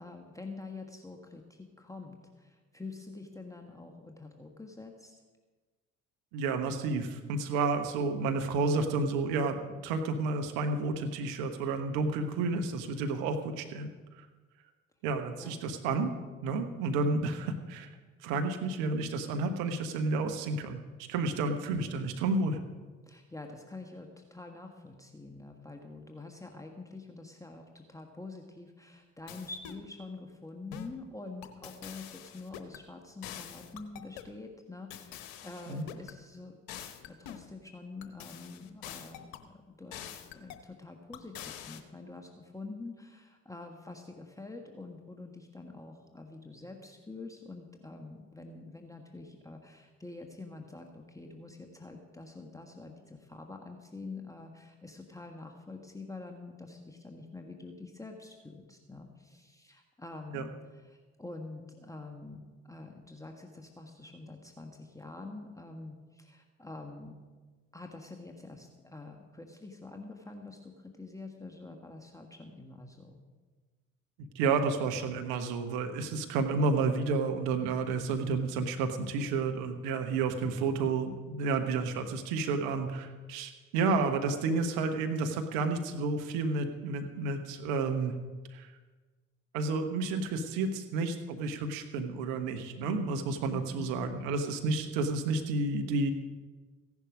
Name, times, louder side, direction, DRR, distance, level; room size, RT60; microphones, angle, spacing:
voice 1, 0.0-5.1 15.4-15.6 23.1-39.2 39.7-40.0 40.3-67.2 67.7-70.7 71.0-73.1 93.5-93.9, left 3 dB, 10° left, 2 dB, 1.6 m, -46 dB
voice 2, 6.3-13.9 14.2-14.3 15.0-16.1 16.4-17.9 18.2-20.8 21.1-22.6 35.7-35.8 60.3-60.4 74.3-88.1 88.5-88.7 89.5-96.1, right 3 dB, 70° right, 6 dB, 1.2 m, -31 dB
sound 1, 29.3-29.9 30.7-31.0 31.4-32.8 33.2-34.3 34.9-36.2 36.7-37.5 38.0-39.5 39.9-40.7 41.1-41.8, left 10 dB, 65° left, 1.1 m, -45 dB
15.5 x 10.5 x 5.1 m, 1.3 s
figure-of-eight pair, 50°, 38 cm